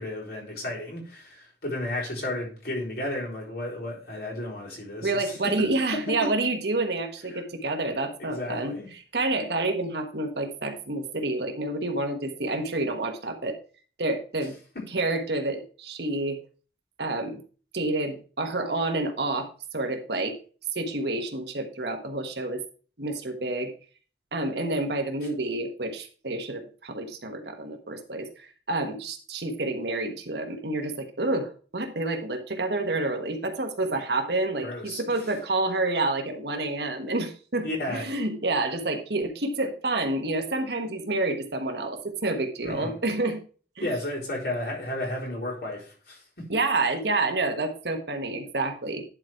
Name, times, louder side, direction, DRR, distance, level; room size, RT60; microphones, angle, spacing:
voice 1, 0.0-5.7 6.1-6.3 7.3-7.4 8.2-8.9 14.7-14.9 34.6-35.0 37.6-38.0 42.6-43.0 43.8-46.5, left 1 dB, 65° left, -3 dB, 3.9 m, -33 dB
voice 2, 5.0-8.7 9.1-13.6 14.0-14.5 14.9-16.4 17.0-17.4 17.7-19.5 19.7-20.4 20.7-22.6 23.0-23.7 24.3-43.4 43.8-43.9 46.5-49.0, right 2 dB, 70° right, 5 dB, 1.4 m, -29 dB
10.5 x 4.5 x 4.6 m, 0.39 s
head